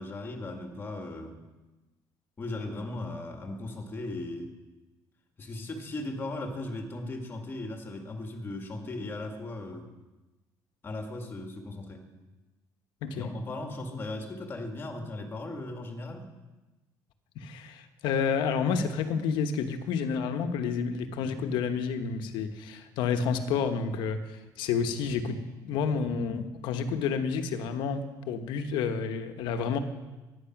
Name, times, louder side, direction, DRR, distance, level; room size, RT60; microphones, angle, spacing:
voice 1, 0.0-1.4 2.4-4.5 5.4-9.9 10.8-12.1 13.1-16.3, left 2 dB, 25° left, 4 dB, 1.9 m, -37 dB
voice 2, 13.0-13.3 17.3-25.4 25.6-29.8, left 6 dB, 90° left, 8 dB, 1.2 m, -30 dB
14.0 x 9.9 x 6.0 m, 1.1 s
cardioid pair, 135°, 8 cm